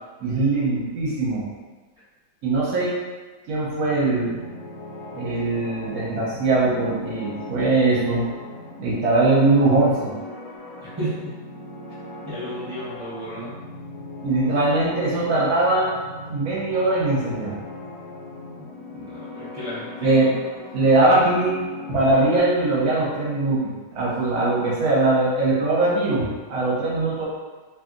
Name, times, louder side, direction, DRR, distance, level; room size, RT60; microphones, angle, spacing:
voice 1, 0.2-1.5 2.4-2.9 3.5-4.4 5.1-8.2 8.8-10.1 14.2-15.9 16.3-17.6 20.0-20.3 20.7-21.6 21.9-27.3, right 2 dB, 65° right, -6 dB, 1.0 m, -21 dB
sound 1, 3.6-22.4, left 2 dB, 90° left, 1.3 m, -38 dB
voice 2, 10.8-11.3 12.2-13.5 18.6-18.7 18.9-20.3, right 1 dB, 20° right, -13 dB, 0.7 m, -33 dB
2.8 x 2.7 x 2.4 m, 1.3 s
omnidirectional pair, 2.0 m